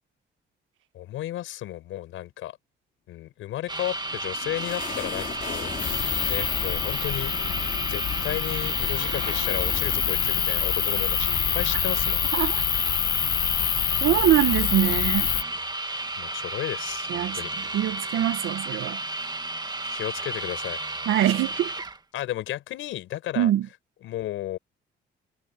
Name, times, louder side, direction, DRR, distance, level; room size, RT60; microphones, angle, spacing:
voice 1, 0.9-2.6 3.1-5.7 6.3-7.3 7.9-12.2 16.2-17.5 19.8-20.8 22.1-23.5 24.0-24.6, left 14 dB, 85° left, 5.8 m, -33 dB
sound 1, 3.7-22.0, right 2 dB, 20° right, 2.2 m, -33 dB
sound 2, 3.9-14.4, left 5 dB, 40° left, 3.7 m, -40 dB
sound 3, 5.8-15.4, left 10 dB, 65° left, 2.0 m, -26 dB
voice 2, 14.0-15.3 17.1-17.4 17.7-19.0 21.1-21.7 23.4-23.7, right 13 dB, 85° right, 1.8 m, -23 dB
cardioid pair, 90°, 20 cm